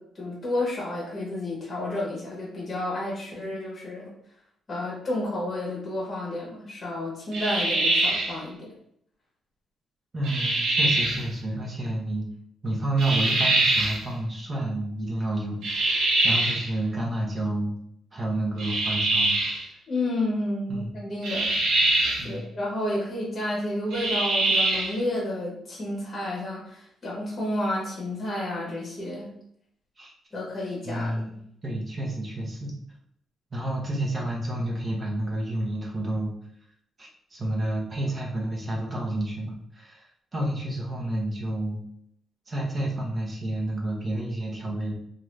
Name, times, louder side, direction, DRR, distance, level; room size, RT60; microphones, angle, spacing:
voice 1, 0.0-4.1 4.7-8.7 19.9-21.5 22.2-29.3 30.3-31.2, left 1 dB, 25° left, -4 dB, 1.1 m, -31 dB
sound 1, 7.3-8.4 10.2-11.2 13.0-14.0 15.6-16.7 18.6-19.6 21.2-22.3 23.9-25.0, right 2 dB, 80° right, 0.7 m, -24 dB
voice 2, 10.1-12.3 12.6-17.8 18.1-19.4 20.7-20.9 22.2-22.5 30.0-30.1 30.9-32.7 33.5-36.3 37.0-40.0 40.3-41.8 42.5-44.9, right 1 dB, 30° right, -2 dB, 0.9 m, -30 dB
2.8 x 2.5 x 3.2 m, 0.71 s
cardioid pair, 140°, 0 cm